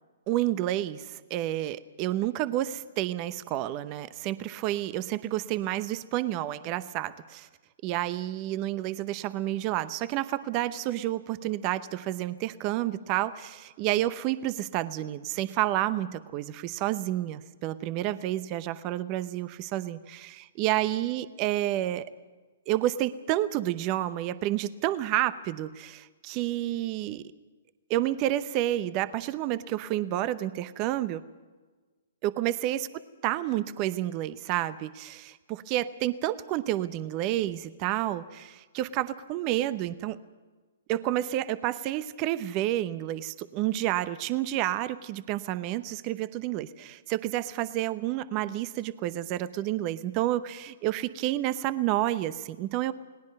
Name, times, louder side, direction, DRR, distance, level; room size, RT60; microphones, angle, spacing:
voice 1, 0.3-7.5 7.8-22.1 22.7-27.2 27.9-31.2 32.2-32.9 33.2-40.2 40.9-52.9, right 14 dB, 35° right, 15 dB, 0.9 m, -30 dB
29.0 x 19.0 x 5.4 m, 1.3 s
hypercardioid pair, 130°, 0 cm